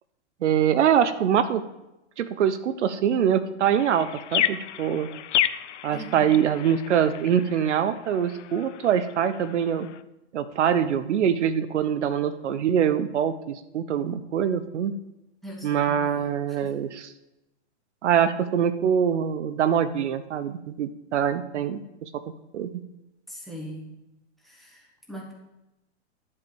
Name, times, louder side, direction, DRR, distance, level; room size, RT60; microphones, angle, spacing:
voice 1, 0.4-1.6 2.2-5.1 5.8-9.9 10.3-14.9 15.6-16.9 18.0-22.2 22.5-22.7, right 8 dB, 80° right, 12 dB, 0.9 m, -24 dB
sound 1, 3.8-10.0, left 12 dB, 80° left, 0.6 m, -31 dB
voice 2, 5.9-6.4 15.4-16.7 23.3-23.9 24.4-25.3, equal, ahead, -4 dB, 1.4 m, -41 dB
11.0 x 4.8 x 7.7 m, 0.93 s
hypercardioid pair, 170°, 35 cm